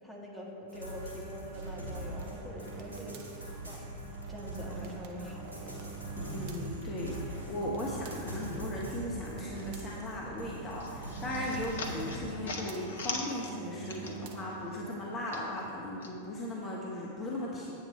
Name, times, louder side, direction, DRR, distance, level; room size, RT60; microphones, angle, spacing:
voice 1, 0.0-5.9, left 1 dB, ahead, -5 dB, 1.6 m, -45 dB
sound 1, 0.7-12.1, right 1 dB, 75° right, 2.2 m, -42 dB
sound 2, 1.5-15.0, right 7 dB, 50° right, 0.7 m, -47 dB
voice 2, 6.2-17.7, left 1 dB, 25° left, -3 dB, 1.0 m, -37 dB
sound 3, 10.8-14.4 14.7-16.1, left 3 dB, 60° left, 0.9 m, -41 dB
8.6 x 7.3 x 4.3 m, 2.7 s
figure-of-eight pair, 90°, 0 cm